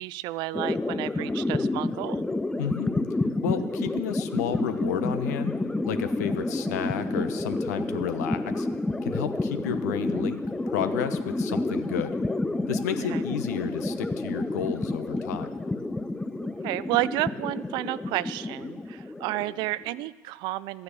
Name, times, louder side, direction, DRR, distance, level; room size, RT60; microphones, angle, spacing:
voice 1, 0.0-2.2 13.1-13.2 16.6-20.8, right 17 dB, 55° right, 18 dB, 0.4 m, -31 dB
sound 1, 0.5-20.0, left 2 dB, 10° left, 0.5 m, -29 dB
voice 2, 2.6-2.9 3.4-5.5 5.8-8.7 9.0-12.2 12.7-15.5, left 9 dB, 75° left, 10 dB, 1.0 m, -32 dB
13.0 x 9.5 x 6.7 m, 1.3 s
hypercardioid pair, 90°, 9 cm